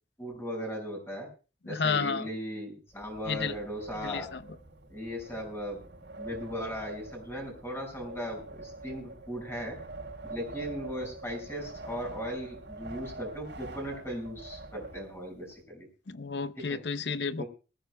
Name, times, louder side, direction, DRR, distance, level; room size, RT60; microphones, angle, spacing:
voice 1, 0.2-1.3 1.6-4.3 4.9-5.8 6.2-9.8 10.3-15.9 16.7-16.8 17.4-17.5, equal, 15° left, 5.9 m, -37 dB
voice 2, 1.7-2.3 3.3-3.5 4.0-4.4 16.1-17.4, left 5 dB, 65° left, 0.7 m, -31 dB
Wind, 2.9-15.5, right 2 dB, 85° right, 5.3 m, -45 dB
22.0 x 14.5 x 2.3 m
head